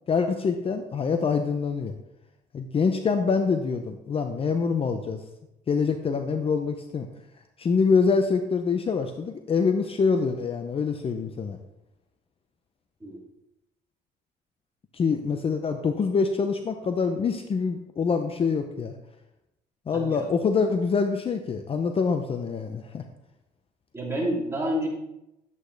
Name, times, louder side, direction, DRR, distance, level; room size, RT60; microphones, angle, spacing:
voice 1, 0.1-1.9 2.5-5.2 5.7-7.1 7.6-11.6 14.9-19.0 19.9-23.1, left 5 dB, 35° left, 6 dB, 0.7 m, -25 dB
voice 2, 19.9-20.3 23.9-24.9, equal, 15° right, -3 dB, 2.9 m, -28 dB
11.0 x 8.1 x 3.4 m, 0.89 s
cardioid pair, 110°, 17 cm